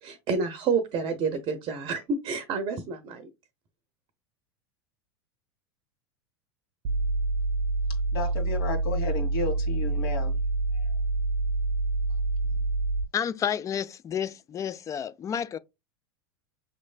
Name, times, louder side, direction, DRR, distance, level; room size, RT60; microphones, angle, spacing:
voice 1, 0.0-3.3, right 5 dB, 40° right, 0.7 m, -29 dB
sound 1, 6.8-13.0, right 3 dB, 70° right, 0.4 m, -27 dB
voice 2, 8.1-10.3 10.7-11.0 12.4-12.6, left 3 dB, 60° left, 1.9 m, -33 dB
voice 3, 13.1-15.6, left 8 dB, 25° left, 0.4 m, -30 dB
6.2 x 3.1 x 2.4 m
hypercardioid pair, 95°, 14 cm